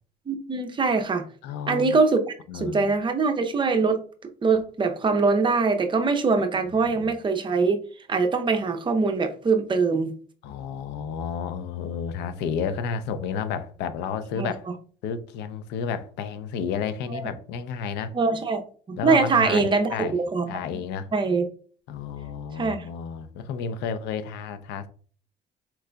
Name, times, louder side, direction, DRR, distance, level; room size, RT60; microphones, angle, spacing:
voice 1, 0.3-1.2 1.7-4.0 4.4-7.8 8.1-10.1 14.4-14.5 17.1-17.2 18.1-19.9 20.2-20.5 21.1-21.5 22.6-22.9, right 4 dB, 30° right, 0.6 m, -23 dB
voice 2, 1.4-2.0 2.5-2.9 6.8-7.1 10.4-14.7 15.0-18.1 19.0-20.1 20.5-21.1 21.9-24.9, left 6 dB, 85° left, 0.5 m, -31 dB
4.5 x 3.8 x 2.3 m
cardioid pair, 110°, 17 cm